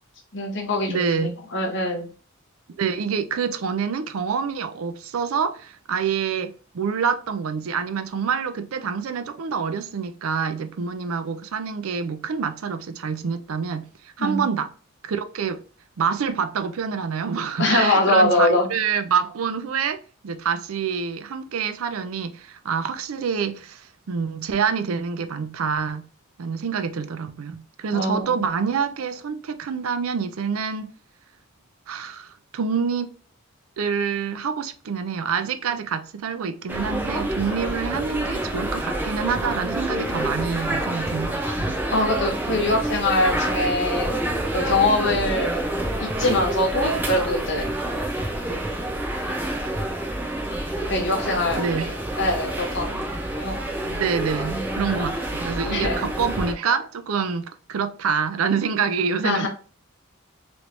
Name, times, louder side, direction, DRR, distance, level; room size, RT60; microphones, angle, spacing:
voice 1, 0.3-2.1 14.2-14.4 17.6-18.8 27.9-28.4 41.9-44.2 44.5-45.6 46.0-47.7 50.9-51.6 52.2-53.0 53.4-54.0 54.5-55.1 55.7-56.0 59.2-59.5, left 2 dB, 60° left, 0.9 m, -23 dB
voice 2, 0.9-1.4 2.8-14.7 15.0-15.6 16.0-26.1 26.4-30.9 31.9-33.1 33.8-41.8 51.6-51.9 53.9-59.5, right 6 dB, 85° right, 0.4 m, -27 dB
sound 1, 36.7-56.5, right 1 dB, 10° right, 0.6 m, -28 dB
3.1 x 3.1 x 2.6 m
head